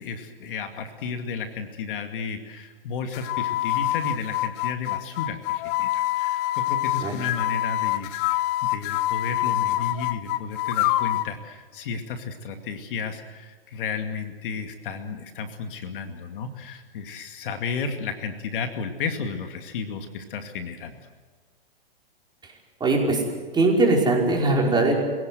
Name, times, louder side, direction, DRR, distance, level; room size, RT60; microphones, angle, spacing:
voice 1, 0.0-21.0, left 5 dB, 60° left, 6 dB, 2.4 m, -33 dB
sound 1, 3.1-11.3, left 16 dB, 35° left, 0.8 m, -26 dB
voice 2, 22.8-23.2 23.5-24.9, right 2 dB, 15° right, -1 dB, 5.3 m, -20 dB
25.5 x 17.5 x 7.9 m, 1.4 s
hypercardioid pair, 120°, 30 cm